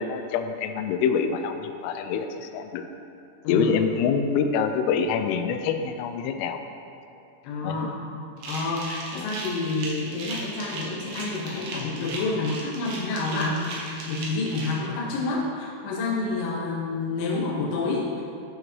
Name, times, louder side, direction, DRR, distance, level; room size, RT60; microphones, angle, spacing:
voice 1, 0.0-2.8 3.5-6.6 7.6-7.9 9.1-9.3, left 6 dB, 85° left, 7 dB, 3.2 m, -26 dB
voice 2, 3.4-3.8 7.4-8.0 8.5-18.2, left 3 dB, 70° left, -5 dB, 3.3 m, -28 dB
sound 1, 8.4-14.7, right 3 dB, 75° right, 2.2 m, -37 dB
11.5 x 5.9 x 3.1 m, 2.6 s
omnidirectional pair, 5.8 m